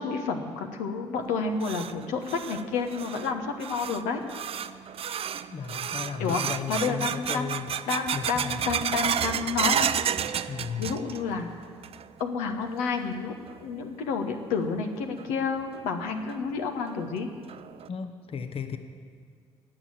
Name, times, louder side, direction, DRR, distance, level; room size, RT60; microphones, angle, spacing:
voice 1, 0.0-4.2 6.2-6.4 6.7-7.5 7.9-9.9 10.8-11.5 12.2-17.3, left 5 dB, 80° left, 5 dB, 1.2 m, -30 dB
sound 1, 1.2-11.4 11.6-12.2 12.6-12.7 13.5-13.6 15.2-15.3 15.7-15.8 16.3-16.4 16.9-17.0 17.5-17.9, right 9 dB, 50° right, 0.6 m, -32 dB
voice 2, 5.5-7.7 8.1-8.6 10.5-10.9 17.9-18.8, left 6 dB, 50° left, 8 dB, 1.1 m, -35 dB
19.0 x 6.8 x 7.6 m, 2.1 s
hypercardioid pair, 50°, 13 cm